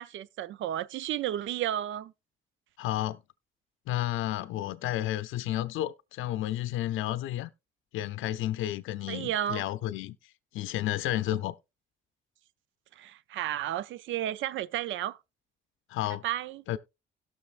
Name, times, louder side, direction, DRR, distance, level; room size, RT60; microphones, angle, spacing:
voice 1, 0.0-2.1 9.1-9.6 13.0-15.2 16.2-16.6, right 12 dB, 75° right, 0.5 m, -32 dB
voice 2, 2.8-3.2 3.9-7.5 7.9-10.2 10.5-11.5 15.9-16.2 16.7-16.8, left 13 dB, 85° left, 0.5 m, -31 dB
17.5 x 6.4 x 2.4 m
cardioid pair, 90°, 20 cm